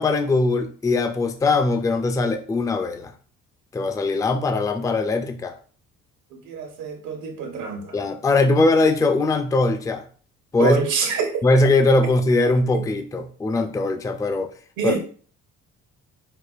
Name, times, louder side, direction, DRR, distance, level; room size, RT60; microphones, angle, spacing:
voice 1, 0.0-3.1 3.7-5.5 7.9-10.0 10.5-10.8 11.4-14.5 14.8-15.0, left 3 dB, 10° left, 7 dB, 0.3 m, -21 dB
voice 2, 6.5-8.0 10.6-11.3 14.8-15.0, right 5 dB, 80° right, 3 dB, 1.0 m, -25 dB
4.9 x 2.4 x 2.3 m, 0.43 s
cardioid pair, 90°, 30 cm